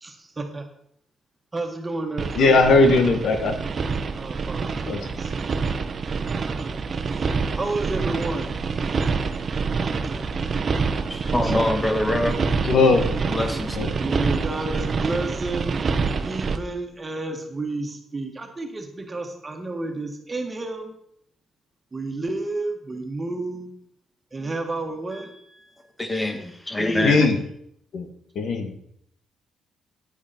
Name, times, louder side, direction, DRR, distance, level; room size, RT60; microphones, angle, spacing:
voice 1, 0.0-0.6 1.5-2.7 4.1-5.3 7.6-8.5 14.0-15.8 16.2-20.9 21.9-23.7 24.3-25.3 26.8-27.3, right 2 dB, 25° right, 4 dB, 1.8 m, -30 dB
sound 1, 2.2-16.6, right 4 dB, 45° right, 0.9 m, -26 dB
voice 2, 2.3-3.5 4.9-5.0 12.6-13.1 13.7-13.9 27.0-27.4 27.9-28.1 28.3-28.8, left 3 dB, 65° left, 6 dB, 1.5 m, -18 dB
voice 3, 11.3-12.4 13.3-13.8 25.1-25.3 26.0-27.2, left 1 dB, 15° left, 6 dB, 1.7 m, -25 dB
9.9 x 8.5 x 4.4 m, 0.71 s
cardioid pair, 90°, 0 cm